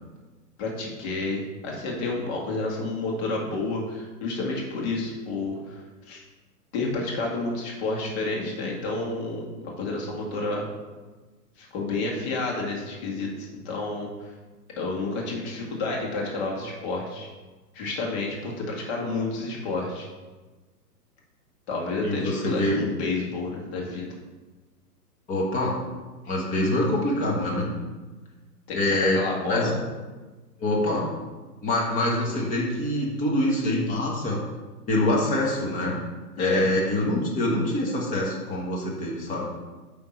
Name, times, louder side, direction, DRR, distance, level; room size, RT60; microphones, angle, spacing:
voice 1, 0.6-5.8 6.1-6.2 6.7-10.7 11.6-14.3 14.8-17.3 17.7-20.1 21.7-24.1 28.7-29.8 36.4-36.7, left 3 dB, 40° left, -2 dB, 2.0 m, -30 dB
voice 2, 22.0-22.8 25.3-25.8 26.3-27.7 28.7-29.7 30.6-31.1 31.6-34.4 34.9-36.0 36.4-39.5, left 1 dB, 15° left, -2 dB, 1.2 m, -25 dB
9.3 x 3.5 x 4.4 m, 1.3 s
hypercardioid pair, 140°, 48 cm